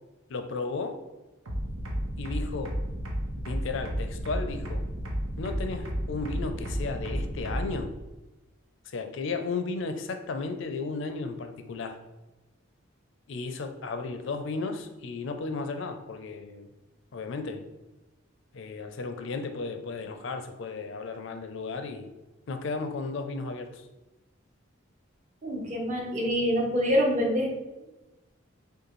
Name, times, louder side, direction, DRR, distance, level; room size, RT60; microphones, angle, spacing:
voice 1, 0.3-1.0 2.2-2.8 3.3-4.8 5.4-7.9 8.8-12.0 13.3-16.7 17.1-17.7 18.5-22.1 22.5-23.9, left 4 dB, 60° left, 7 dB, 0.4 m, -34 dB
sound 1, 1.5-7.8, equal, 80° right, 0.9 m, -32 dB
voice 2, 25.4-27.5, equal, 35° right, -1 dB, 0.8 m, -26 dB
5.2 x 2.3 x 3.0 m, 1.1 s
head